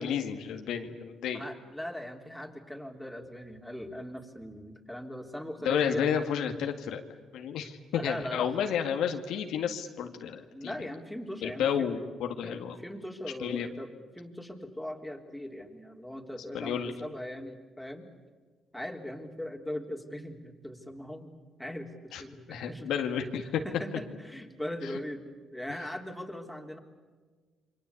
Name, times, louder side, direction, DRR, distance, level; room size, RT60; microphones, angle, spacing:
voice 1, 0.0-1.4 5.6-7.0 7.3-10.7 11.4-12.8 13.4-13.7 16.5-16.9 22.1-22.2 22.5-23.6, left 8 dB, 85° left, 5 dB, 1.9 m, -31 dB
voice 2, 1.3-6.2 8.0-8.6 10.5-11.9 12.4-18.1 18.7-21.3 21.6-22.9 23.6-26.8, left 1 dB, 5° left, 2 dB, 3.5 m, -40 dB
28.5 x 24.0 x 8.5 m, 1.4 s
cardioid pair, 90°, 0 cm